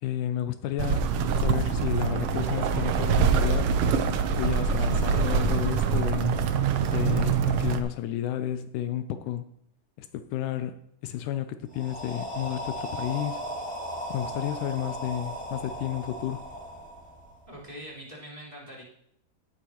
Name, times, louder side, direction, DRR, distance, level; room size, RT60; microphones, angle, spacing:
voice 1, 0.0-1.1 1.4-3.8 4.4-6.4 6.9-9.4 10.0-13.4 14.1-16.4, left 12 dB, 80° left, 10 dB, 2.1 m, -31 dB
sound 1, 0.8-7.8, right 6 dB, 90° right, 1.2 m, -24 dB
sound 2, 11.7-17.6, equal, 5° left, 1.4 m, -36 dB
voice 2, 17.5-18.8, equal, 10° right, -6 dB, 3.7 m, -43 dB
17.5 x 10.0 x 3.0 m, 0.71 s
omnidirectional pair, 3.7 m